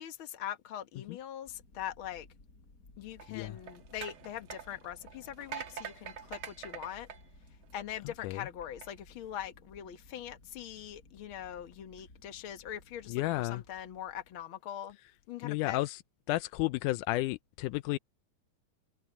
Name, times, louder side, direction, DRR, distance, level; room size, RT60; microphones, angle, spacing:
voice 1, 0.0-2.3 3.0-7.1 7.7-15.0 15.3-15.8, left 10 dB, 50° left, 1.9 m, -42 dB
sound 1, 1.5-14.4, left 2 dB, 25° left, 4.9 m, -59 dB
sound 2, 3.1-8.1 8.6-8.9, right 8 dB, 55° right, 1.6 m, -45 dB
voice 2, 13.1-13.6 15.4-16.0 16.3-18.0, left 18 dB, 85° left, 2.1 m, -32 dB
omnidirectional pair, 3.6 m